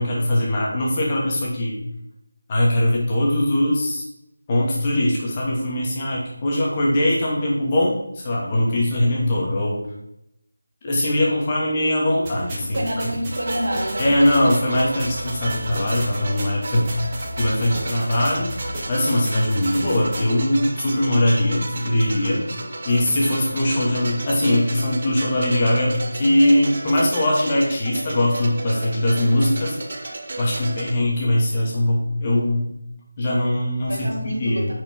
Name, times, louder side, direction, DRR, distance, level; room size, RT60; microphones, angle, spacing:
voice 1, 0.0-1.8 2.5-4.0 4.5-9.8 10.8-12.8 14.0-16.9 17.4-18.5 18.9-22.5 22.9-29.7 30.4-32.7 33.2-34.7, left 1 dB, 20° left, -3 dB, 2.6 m, -21 dB
sound 1, 12.2-20.2, equal, 20° right, 2.1 m, -34 dB
voice 2, 12.7-14.1 33.9-34.7, equal, 75° right, 1 dB, 3.3 m, -27 dB
sound 2, 13.3-30.9, right 2 dB, 45° right, 1.5 m, -33 dB
9.9 x 6.2 x 4.8 m, 0.80 s
figure-of-eight pair, 170°, 0 cm